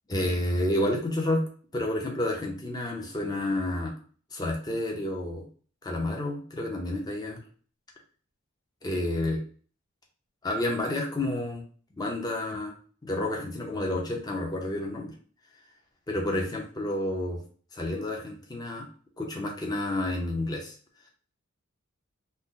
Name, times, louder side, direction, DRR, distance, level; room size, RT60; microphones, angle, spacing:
voice 1, 0.1-1.4 1.7-3.9 4.3-5.4 5.8-7.4 8.8-9.4 10.4-11.6 12.0-12.7 13.0-15.1 16.1-17.4 17.7-18.9 19.2-20.7, left 1 dB, 20° left, 0 dB, 0.6 m, -30 dB
2.7 x 2.1 x 3.6 m, 0.41 s
head